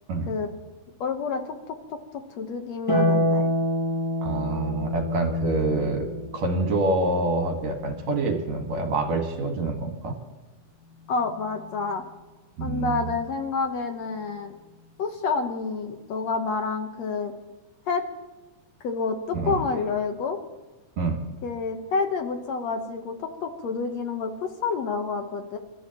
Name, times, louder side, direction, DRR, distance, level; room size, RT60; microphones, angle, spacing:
voice 1, 1.0-3.5 11.1-12.1 12.6-14.5 15.0-17.3 17.9-18.0 18.8-20.4 21.4-25.6, left 4 dB, 65° left, 5 dB, 2.1 m, -29 dB
Harp, 2.9-9.4 11.0-12.0, left 1 dB, 10° left, 6.9 m, -29 dB
voice 2, 4.2-6.1 6.3-10.2 12.6-13.1 19.3-19.6 21.0-21.2, right 3 dB, 60° right, 3 dB, 2.9 m, -26 dB
29.0 x 13.5 x 3.0 m, 1.2 s
omnidirectional pair, 3.7 m